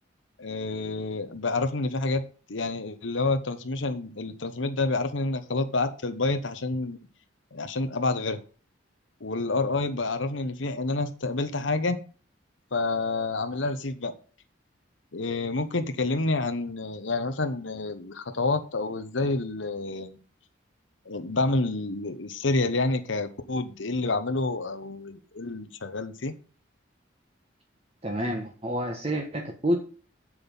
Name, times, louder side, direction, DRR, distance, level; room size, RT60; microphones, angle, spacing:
voice 1, 0.4-2.2 2.5-7.0 7.5-8.4 9.2-12.0 12.7-14.1 15.1-20.2 21.1-26.3, left 3 dB, 80° left, 9 dB, 1.1 m, -28 dB
voice 2, 28.0-29.8, equal, 30° right, 1 dB, 1.4 m, -28 dB
8.0 x 7.8 x 5.5 m, 0.38 s
head